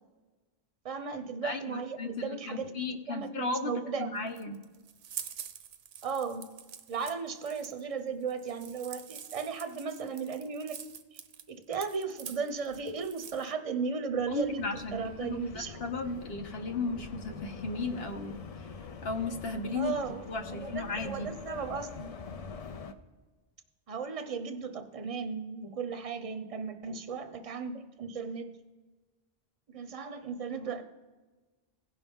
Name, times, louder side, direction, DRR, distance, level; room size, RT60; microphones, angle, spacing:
voice 1, 0.8-2.7 3.1-4.3 6.0-6.5 6.9-10.8 11.5-14.6 14.9-15.8 19.7-22.1 23.9-28.5 29.7-30.8, right 5 dB, 40° right, 8 dB, 0.7 m, -36 dB
voice 2, 1.4-3.7 4.0-4.5 14.3-18.7 19.0-21.3, left 3 dB, 75° left, 5 dB, 1.1 m, -35 dB
sound 1, 4.2-13.5, right 8 dB, 85° right, 0.9 m, -46 dB
sound 2, 14.1-22.9, left 5 dB, 45° left, 0.5 m, -44 dB
17.0 x 5.6 x 3.5 m, 1.3 s
omnidirectional pair, 1.0 m